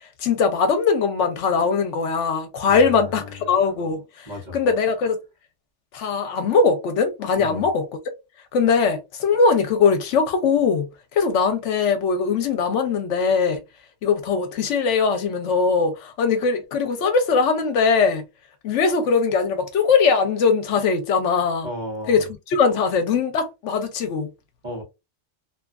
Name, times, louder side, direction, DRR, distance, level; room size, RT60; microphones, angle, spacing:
voice 1, 0.2-5.2 5.9-7.9 8.5-10.9 11.1-13.6 14.0-18.2 18.6-21.7 22.1-24.3, left 5 dB, 75° left, 0.9 m, -21 dB
voice 2, 2.6-3.5 4.3-4.6 7.4-7.7 21.6-22.2 24.6-24.8, left 1 dB, 40° right, 1.1 m, -34 dB
2.8 x 2.3 x 2.3 m
omnidirectional pair, 1.3 m